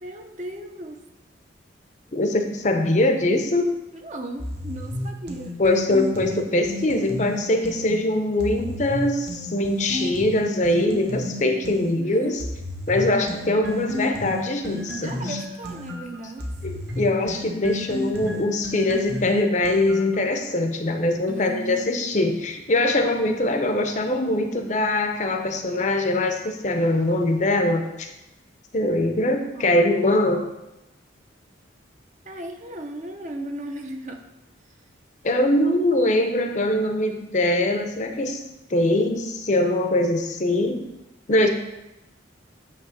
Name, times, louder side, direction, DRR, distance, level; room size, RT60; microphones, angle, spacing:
voice 1, 0.0-1.0 4.0-5.6 11.9-12.4 15.0-16.5 21.3-22.0 29.5-29.8 32.2-34.2, right 1 dB, 40° right, 3 dB, 0.8 m, -36 dB
voice 2, 2.1-3.8 5.6-12.4 12.9-15.4 16.6-28.1 28.7-30.5 35.2-38.4 38.7-40.8 41.3-41.5, left 1 dB, 40° left, 5 dB, 0.7 m, -22 dB
sound 1, 4.4-7.9 8.4-11.9 12.4-20.2, left 1 dB, 55° right, 1.3 m, -32 dB
9.1 x 3.1 x 6.4 m, 0.93 s
head